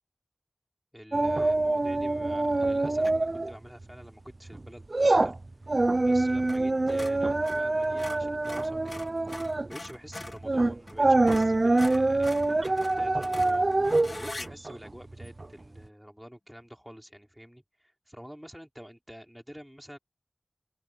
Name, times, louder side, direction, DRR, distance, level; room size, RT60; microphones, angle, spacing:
voice 1, 0.9-5.3 6.0-9.0 9.7-13.7 14.2-20.0, equal, 5° right, 4.4 m, -47 dB
sound 1, 1.1-3.5 3.8-4.0 4.5-15.5 15.8-15.9, right 2 dB, 55° right, 0.4 m, -25 dB
sound 2, 3.0-3.3 6.4-6.6 6.9-10.4 10.9-11.0 11.3-14.5, left 2 dB, 55° left, 1.1 m, -42 dB
open air
wide cardioid pair, 60°, 0 cm